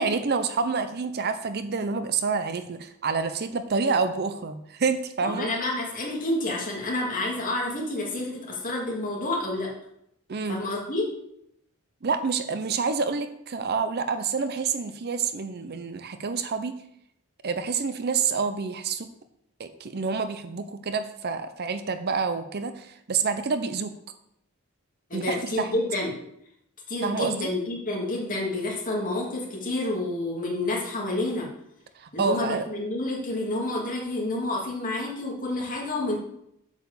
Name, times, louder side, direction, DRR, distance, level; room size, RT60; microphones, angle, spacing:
voice 1, 0.0-5.5 10.3-10.6 12.0-16.8 17.4-19.1 19.6-23.9 25.1-25.7 27.0-27.5 32.0-32.6, right 5 dB, 45° right, 10 dB, 0.6 m, -28 dB
voice 2, 5.2-9.7 10.5-11.1 25.1-26.2 26.9-31.5 32.1-36.2, left 2 dB, 40° left, -3 dB, 2.6 m, -29 dB
8.0 x 4.8 x 7.0 m, 0.76 s
head